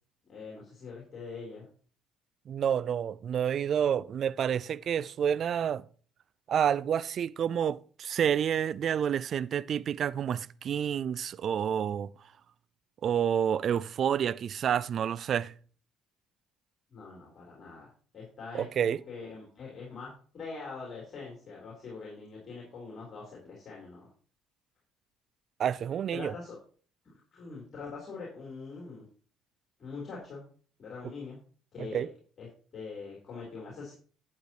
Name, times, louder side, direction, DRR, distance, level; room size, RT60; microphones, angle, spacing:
voice 1, 0.3-1.7 16.9-24.1 26.1-26.6 27.0-29.0 29.8-30.4 30.8-31.4 31.7-32.1 32.4-32.5 32.7-33.9, left 4 dB, 40° left, 3.8 m, -43 dB
voice 2, 2.5-5.8 6.5-12.1 13.0-15.5 18.5-19.0 25.6-26.3 31.8-32.1, right 8 dB, 50° right, 0.4 m, -29 dB
11.5 x 8.5 x 3.0 m
figure-of-eight pair, 50°, 0 cm